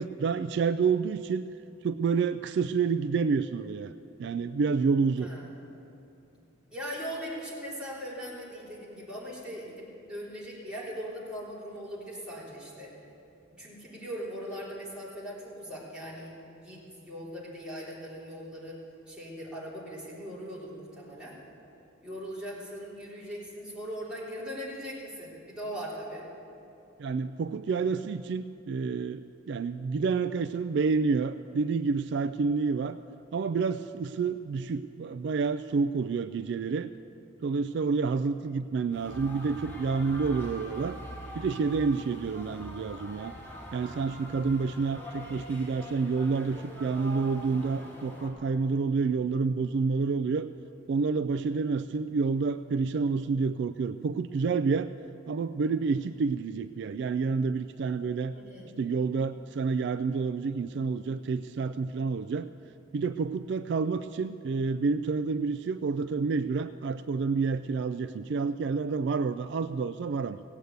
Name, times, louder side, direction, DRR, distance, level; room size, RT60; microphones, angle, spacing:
voice 1, 0.0-1.4 1.8-3.9 4.2-5.3 27.0-33.0 33.3-36.9 37.4-41.0 41.3-43.3 43.7-50.5 50.9-54.9 55.3-58.3 58.8-62.5 62.9-70.4, right 4 dB, 60° right, 11 dB, 0.3 m, -29 dB
voice 2, 6.7-12.9 13.6-18.8 19.1-21.4 22.0-26.2 58.3-58.8, equal, 5° right, -8 dB, 3.6 m, -40 dB
sound 1, 38.9-48.3, equal, 10° left, 2.3 m, -44 dB
17.0 x 8.1 x 8.0 m, 2.7 s
head